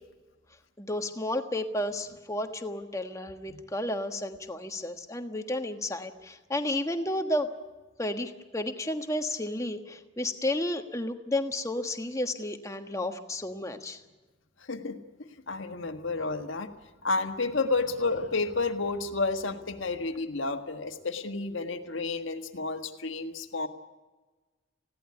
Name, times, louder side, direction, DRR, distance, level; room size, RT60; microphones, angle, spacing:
voice 1, 0.8-7.5 8.0-14.0, left 1 dB, 15° left, 6 dB, 1.4 m, -32 dB
voice 2, 15.5-16.7 17.0-23.7, left 3 dB, 70° left, 6 dB, 1.6 m, -31 dB
20.5 x 16.5 x 9.7 m, 1.2 s
head